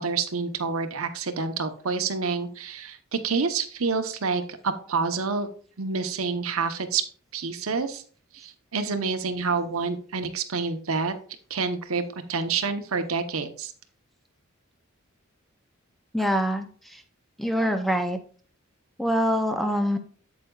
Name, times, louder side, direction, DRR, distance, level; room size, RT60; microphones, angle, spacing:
voice 1, 0.0-5.5 5.8-7.0 7.3-8.0 8.3-11.1 11.5-12.0 12.3-13.7, right 4 dB, 75° right, 8 dB, 0.9 m, -28 dB
voice 2, 16.1-16.7 16.9-17.0 17.4-18.2 19.0-20.0, equal, ahead, 7 dB, 0.5 m, -24 dB
8.3 x 7.9 x 2.3 m, 0.43 s
head